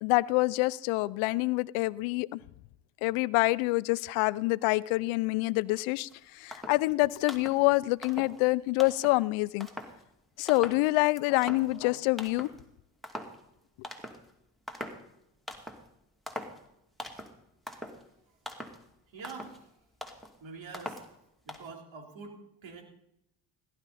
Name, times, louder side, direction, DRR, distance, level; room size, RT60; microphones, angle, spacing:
voice 1, 0.0-2.4 3.0-9.7 10.4-12.5, left 21 dB, 80° left, 0.6 m, -26 dB
sound 1, 6.1-6.2 6.5-6.9 7.2-7.7 8.0-8.4 8.8-9.2 9.6-10.0 10.5-10.9 11.2-11.9 12.2-12.6 13.0-13.4 13.8-14.3 14.7-15.1 15.5-15.9 16.3-16.6 17.0-17.4 17.7-18.0 18.4-18.8 19.2-19.6 20.0-20.3 20.7-21.1 21.5-21.7, left 1 dB, ahead, 2.5 m, -42 dB
voice 2, 19.1-19.7 20.4-21.0 21.4-22.8, right 4 dB, 65° right, 3.7 m, -45 dB
17.5 x 11.5 x 4.2 m
hypercardioid pair, 55°, 49 cm